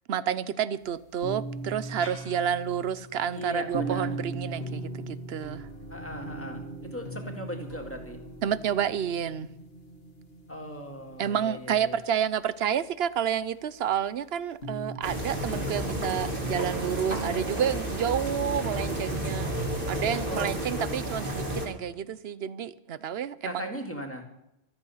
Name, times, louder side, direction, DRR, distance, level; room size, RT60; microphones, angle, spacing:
voice 1, 0.1-5.7 8.4-9.5 11.2-19.5 19.9-23.7, right 9 dB, 60° right, 0.9 m, -30 dB
sound 1, 1.2-11.5 14.6-15.0, right 2 dB, 55° left, 1.9 m, -39 dB
voice 2, 3.3-4.1 5.9-8.2 10.5-12.0 20.3-21.0 23.5-24.2, equal, 10° left, 2.1 m, -38 dB
sound 2, 15.0-21.7, right 1 dB, 45° right, 3.4 m, -31 dB
14.5 x 13.5 x 5.7 m
omnidirectional pair, 1.2 m